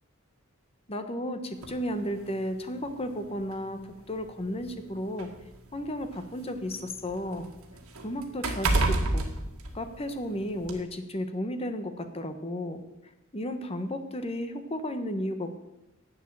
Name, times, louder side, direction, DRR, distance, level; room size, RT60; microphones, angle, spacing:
voice 1, 0.9-3.8 4.1-5.3 5.7-7.5 8.0-9.3 9.7-12.8 13.3-15.6, equal, 30° left, 8 dB, 1.2 m, -33 dB
sound 1, 1.6-1.8 2.8-2.9 3.4-3.5 4.5-6.4 6.8-10.3 10.6-10.8, right 2 dB, 85° right, 1.9 m, -30 dB
11.0 x 8.5 x 7.5 m, 0.94 s
head